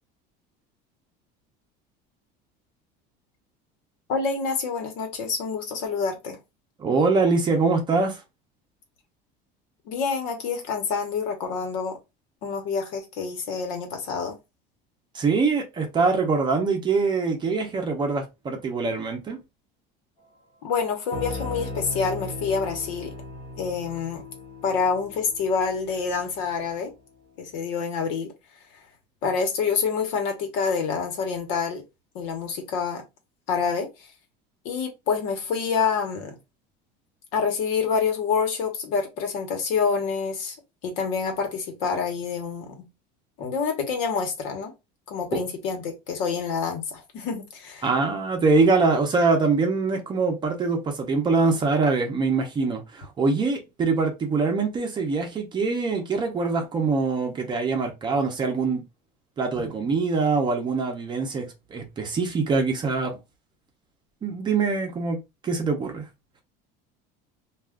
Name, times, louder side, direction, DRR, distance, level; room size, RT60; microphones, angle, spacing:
voice 1, 4.1-6.4 9.9-12.0 12.4-14.4 20.6-23.1 23.6-24.2 24.6-26.9 27.4-28.3 29.2-31.8 32.1-33.0 33.5-34.1 34.6-36.4 37.3-40.6 40.8-42.9 43.4-44.7 45.1-47.9, left 5 dB, 75° left, 1.1 m, -27 dB
voice 2, 6.8-8.2 15.1-19.4 45.3-45.4 47.8-58.8 59.4-63.1 64.2-66.0, right 4 dB, 25° right, 0.7 m, -24 dB
sound 1, 21.1-26.7, left 2 dB, 25° left, 0.9 m, -37 dB
2.4 x 2.3 x 3.5 m
cardioid pair, 160°, 20 cm